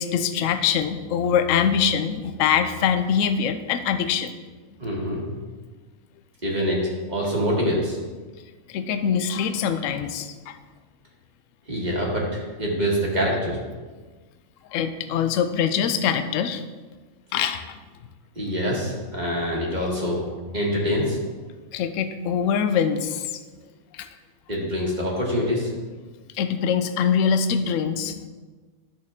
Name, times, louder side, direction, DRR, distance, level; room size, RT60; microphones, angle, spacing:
voice 1, 0.0-4.3 7.2-7.3 8.7-10.6 14.7-16.6 17.3-17.7 21.7-23.3 23.9-24.1 26.3-28.2, left 7 dB, 70° left, 9 dB, 0.9 m, -23 dB
voice 2, 4.8-5.2 6.4-8.0 11.7-13.6 18.4-20.3 20.5-21.2 24.5-25.7, equal, 30° right, -3 dB, 1.9 m, -25 dB
11.0 x 6.5 x 3.6 m, 1.3 s
omnidirectional pair, 1.4 m